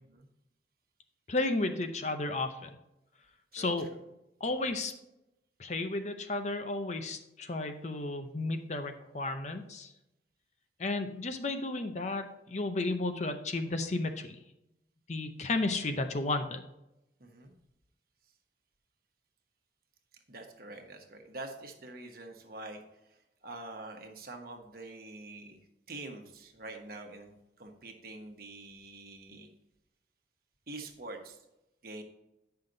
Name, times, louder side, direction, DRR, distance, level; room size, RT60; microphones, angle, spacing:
voice 1, 1.3-2.7 3.5-3.9 4.4-4.9 5.6-9.9 10.8-14.4 15.1-16.6, left 2 dB, 40° left, 7 dB, 0.6 m, -33 dB
voice 2, 3.5-4.0 17.2-17.5 20.3-22.8 23.1-25.6 25.9-29.5 30.7-31.4 31.8-32.0, right 2 dB, 55° right, 4 dB, 1.2 m, -46 dB
9.2 x 5.7 x 3.9 m, 0.89 s
head